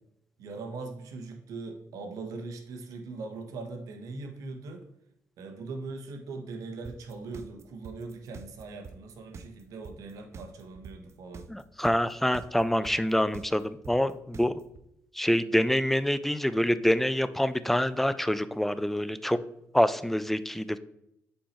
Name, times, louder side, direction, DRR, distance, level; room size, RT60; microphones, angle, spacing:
voice 1, 0.4-4.8 5.4-11.5, right 3 dB, 75° right, 4 dB, 1.3 m, -40 dB
sound 1, 6.8-14.8, right 5 dB, 50° right, 0.6 m, -45 dB
voice 2, 11.5-14.5 15.2-19.4 19.7-20.8, equal, 5° left, 14 dB, 0.5 m, -26 dB
7.2 x 4.5 x 4.5 m, 0.78 s
cardioid pair, 75°, 6 cm